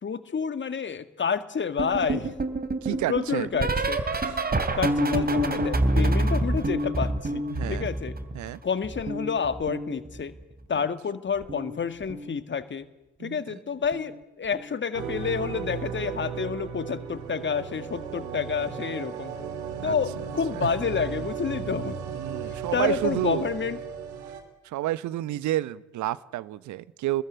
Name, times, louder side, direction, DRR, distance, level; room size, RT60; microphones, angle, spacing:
voice 1, 0.0-2.4 2.9-4.0 4.8-8.2 8.6-10.3 10.7-12.9 13.2-19.3 19.8-22.0 22.4-23.8, left 6 dB, 30° left, 11 dB, 2.0 m, -29 dB
sound 1, 1.8-8.6 8.8-10.4 11.4-11.8 12.0-12.4 13.9-14.2 14.5-14.8 16.3-16.4, right 1 dB, 25° right, 3.3 m, -27 dB
voice 2, 2.8-3.5 4.1-4.4 7.5-7.9 8.3-8.6 13.2-13.5 19.8-19.9 20.5-20.7 22.1-23.5 24.6-27.2, right 14 dB, 55° right, 18 dB, 1.2 m, -30 dB
sound 2, 14.9-24.4, right 7 dB, 75° right, 3.3 m, -35 dB
29.5 x 21.0 x 8.5 m, 0.99 s
figure-of-eight pair, 45°, 35 cm